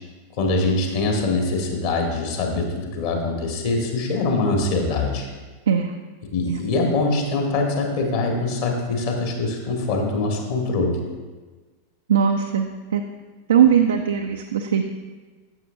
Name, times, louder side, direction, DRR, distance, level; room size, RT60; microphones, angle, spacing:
voice 1, 0.4-5.3 6.3-11.0, left 3 dB, 50° left, 1 dB, 1.5 m, -23 dB
voice 2, 5.7-6.0 6.5-6.6 12.1-13.0 13.5-14.8, right 8 dB, 65° right, 5 dB, 0.4 m, -19 dB
9.5 x 7.5 x 2.6 m, 1.3 s
figure-of-eight pair, 90°, 0 cm